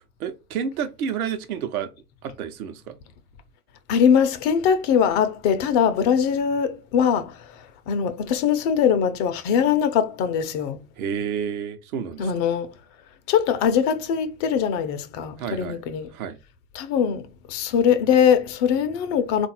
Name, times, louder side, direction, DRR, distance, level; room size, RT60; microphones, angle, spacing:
voice 1, 0.0-1.9 2.2-3.0 11.0-12.3 15.4-15.8 16.1-16.4, right 7 dB, 70° right, 0.9 m, -30 dB
voice 2, 3.9-10.8 12.2-12.7 13.3-16.1 16.7-19.5, left 7 dB, 45° left, 0.7 m, -22 dB
3.8 x 2.5 x 4.2 m
hypercardioid pair, 90°, 45 cm